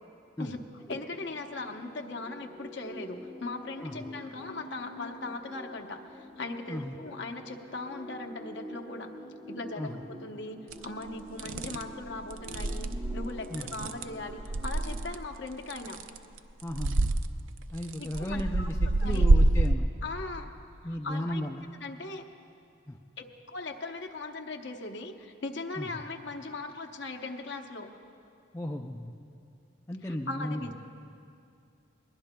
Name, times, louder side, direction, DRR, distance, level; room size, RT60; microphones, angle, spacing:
sound 1, 0.8-15.1, left 1 dB, ahead, 0.9 m, -46 dB
voice 1, 0.9-9.1 9.5-16.0 18.0-18.7 19.0-19.3 20.0-20.5 20.8-21.5 21.8-22.2 23.2-27.9 30.0-30.7, left 3 dB, 60° left, 4 dB, 0.9 m, -39 dB
sound 2, 10.7-10.8 11.4-11.8 12.3-15.1 15.7-16.4 16.7-17.2 17.8-19.7, right 2 dB, 70° right, 0.5 m, -26 dB
voice 2, 16.6-17.2 17.7-19.9 20.8-21.6 22.9-23.0 25.8-26.0 28.5-29.2 29.9-30.7, left 1 dB, 15° left, 1 dB, 0.4 m, -35 dB
22.0 x 20.5 x 2.2 m, 2.5 s
head